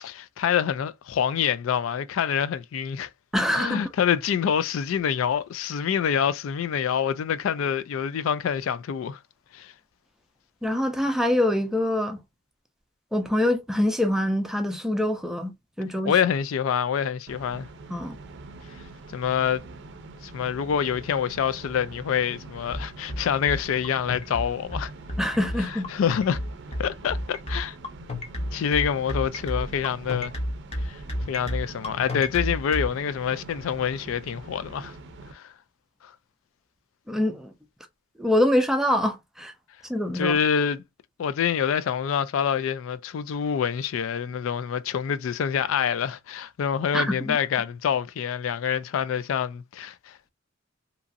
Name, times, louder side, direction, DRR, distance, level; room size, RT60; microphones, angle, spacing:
voice 1, 0.0-3.1 3.6-9.2 9.5-9.7 16.1-17.7 19.1-19.6 20.2-24.9 25.6-26.4 26.8-27.8 28.5-30.3 30.8-31.0 31.3-34.9 35.3-35.5 36.0-36.1 40.1-40.8 41.2-50.3, left 8 dB, 80° left, 0.3 m, -26 dB
voice 2, 3.3-3.9 10.6-12.2 13.1-15.5 15.8-16.1 17.9-18.2 25.2-25.9 37.1-37.5 38.2-39.5 39.9-40.4 46.9-47.4, left 1 dB, ahead, 0.5 m, -24 dB
sound 1, 17.3-35.3, right 3 dB, 60° right, 0.5 m, -44 dB
sound 2, 22.7-32.9, left 1 dB, 30° left, 0.8 m, -30 dB
2.9 x 2.5 x 2.5 m
head